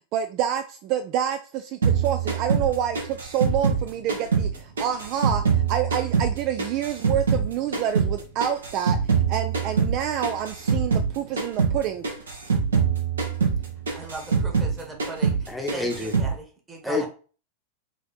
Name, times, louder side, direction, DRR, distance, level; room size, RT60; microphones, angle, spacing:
voice 1, 0.1-9.0 9.3-12.1, right 9 dB, 40° right, 9 dB, 0.3 m, -28 dB
sound 1, 1.8-4.5 4.8-7.5 7.7-11.1 11.4-11.8 12.0-14.7 15.0-15.4 15.7-16.3, right 6 dB, 70° right, 1.0 m, -24 dB
voice 2, 13.9-17.1, right 3 dB, 15° right, 2 dB, 1.2 m, -38 dB
voice 3, 15.5-16.2 16.8-17.1, left 2 dB, 5° left, 1 dB, 0.9 m, -28 dB
3.9 x 2.8 x 4.0 m, 0.38 s
figure-of-eight pair, 90°, 0 cm